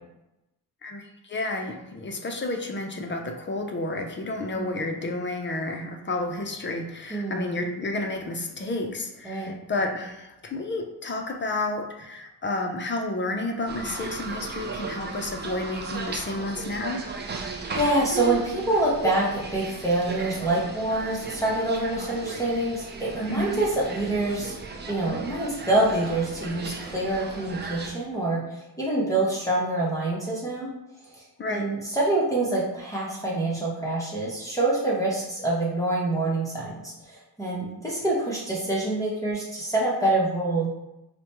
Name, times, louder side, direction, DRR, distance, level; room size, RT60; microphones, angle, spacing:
voice 1, 0.8-17.0 23.3-23.6 31.4-31.7, left 2 dB, 30° left, 4 dB, 0.5 m, -31 dB
voice 2, 7.1-7.5 9.2-9.5 17.7-24.5 24.9-30.7 31.5-40.7, right 2 dB, 10° left, -6 dB, 0.8 m, -26 dB
sound 1, 13.7-27.9, right 4 dB, 25° right, 0.4 m, -36 dB
4.9 x 2.2 x 2.9 m, 0.92 s
cardioid pair, 110°, 41 cm